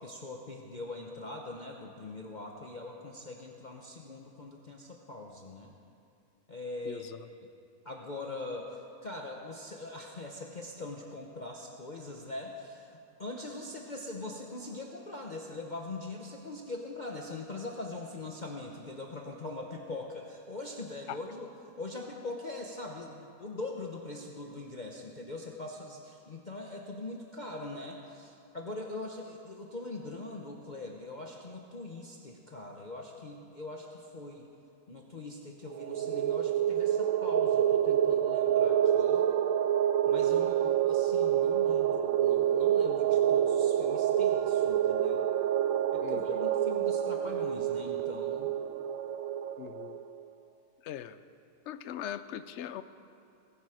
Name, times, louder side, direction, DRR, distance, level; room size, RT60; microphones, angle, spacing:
voice 1, 0.0-5.7 6.5-7.1 7.8-34.5 34.9-39.2 40.1-45.3 45.9-48.5, left 2 dB, 35° left, 0 dB, 0.9 m, -42 dB
voice 2, 6.9-7.3 21.1-21.2 46.0-46.4 49.6-50.0 50.8-51.2 51.7-52.8, left 10 dB, 65° left, 13 dB, 0.7 m, -40 dB
sound 1, 35.7-50.0, right 10 dB, 70° right, 1.0 m, -27 dB
21.5 x 10.5 x 4.9 m, 2.5 s
omnidirectional pair, 1.6 m